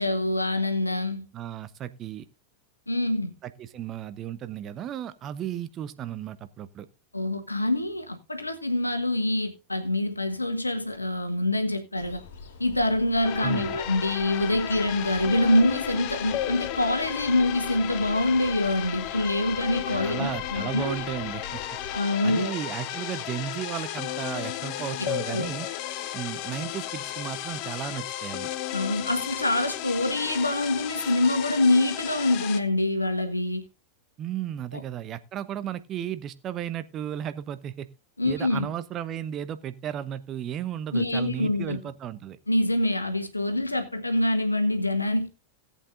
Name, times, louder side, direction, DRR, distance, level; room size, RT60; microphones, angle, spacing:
voice 1, 0.0-1.3 2.9-3.3 7.1-12.2 12.6-21.0 21.9-22.5 25.0-25.5 28.7-33.6 38.2-38.7 40.9-41.8 42.5-45.3, left 1 dB, 85° left, 1.4 m, -25 dB
voice 2, 1.3-2.3 3.4-6.9 13.4-13.8 19.9-21.6 22.2-25.7 26.1-28.5 34.2-37.9 38.2-42.4, right 10 dB, 30° right, 0.9 m, -34 dB
sound 1, 12.0-22.0, left 4 dB, 60° left, 2.4 m, -46 dB
sound 2, 13.2-32.6, left 12 dB, 45° left, 0.8 m, -34 dB
18.0 x 8.3 x 2.6 m
figure-of-eight pair, 90°, 0 cm